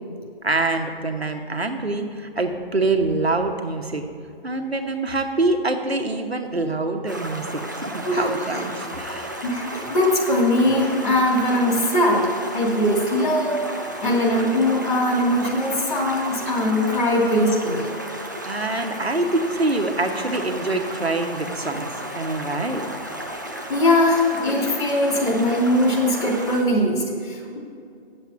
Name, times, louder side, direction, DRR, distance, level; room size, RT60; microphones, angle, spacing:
voice 1, 0.4-4.0 4.4-9.3 17.2-17.3 18.4-21.9 22.1-22.8, right 2 dB, 90° right, 5 dB, 1.1 m, -25 dB
Stream, 7.1-26.6, right 1 dB, 20° right, 0.3 m, -34 dB
voice 2, 9.4-13.7 14.0-17.9 23.7-27.6, left 1 dB, 50° left, -2 dB, 2.8 m, -21 dB
9.2 x 7.3 x 5.7 m, 2.4 s
figure-of-eight pair, 140°, 30 cm